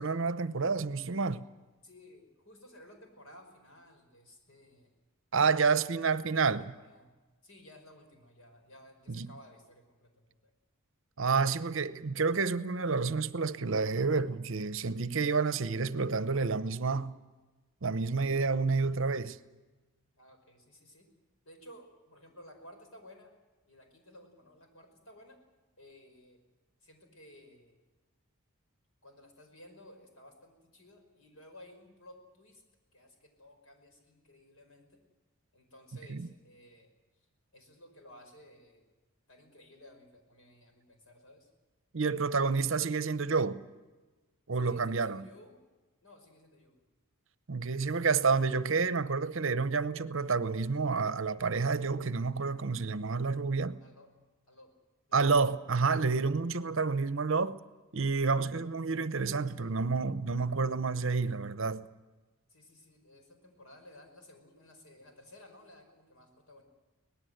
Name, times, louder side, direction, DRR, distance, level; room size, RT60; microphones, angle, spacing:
voice 1, 0.0-1.5 5.3-6.7 9.1-9.3 11.2-17.1 17.8-19.4 36.1-36.3 41.9-43.6 44.5-45.2 47.5-53.8 55.1-57.6 57.9-61.9, right 4 dB, 60° right, 0.8 m, -29 dB
voice 2, 1.8-4.9 5.5-6.0 6.3-7.1 7.4-10.5 20.2-21.1 21.4-23.3 23.7-25.4 25.8-26.4 26.8-27.8 29.0-32.6 32.9-35.0 35.5-36.9 37.5-38.8 39.3-41.5 44.5-45.6 46.0-46.8 53.8-54.1 54.5-54.7 55.1-55.2 62.5-66.6, left 1 dB, 75° left, 5.2 m, -56 dB
24.0 x 18.5 x 7.9 m
head